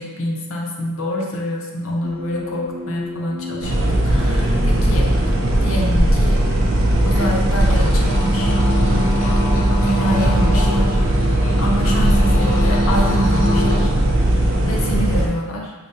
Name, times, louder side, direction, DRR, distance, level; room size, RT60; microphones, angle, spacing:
voice 1, 0.0-5.1 5.6-6.4 7.0-9.2 9.8-11.0 11.6-15.7, equal, 80° left, -1 dB, 0.7 m, -27 dB
sound 1, 2.0-8.1, left 1 dB, 30° right, 0.4 m, -34 dB
sound 2, 3.6-15.3, right 1 dB, 80° right, 0.6 m, -18 dB
sound 3, 7.1-13.9, equal, 40° left, 0.9 m, -24 dB
4.9 x 2.1 x 2.8 m, 1.3 s
head